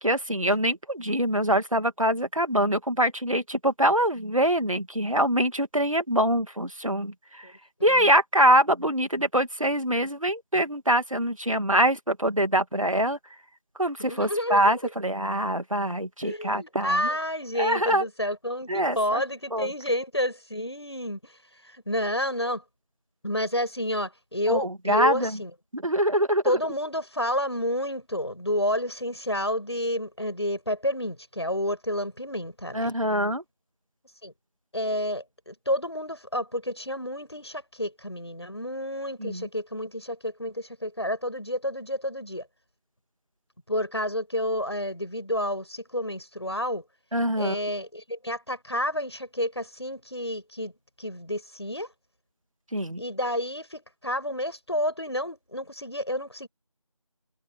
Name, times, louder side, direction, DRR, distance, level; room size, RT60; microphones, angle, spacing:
voice 1, 0.0-7.5 7.8-13.2 13.8-17.1 17.6-18.0 18.7-19.2 19.5-19.7 24.5-25.3 25.7-26.4 32.7-33.4 39.2-39.5 47.1-47.5 52.7-53.0, right 1 dB, 75° right, 2.5 m, -24 dB
voice 2, 7.8-8.1 14.0-14.8 16.2-21.3 21.6-22.6 23.2-25.5 26.4-32.9 34.2-34.3 34.7-42.5 43.7-46.8 47.4-50.7 51.0-51.9 53.0-56.5, left 1 dB, 50° left, 7.5 m, -30 dB
figure-of-eight pair, 175°, 17 cm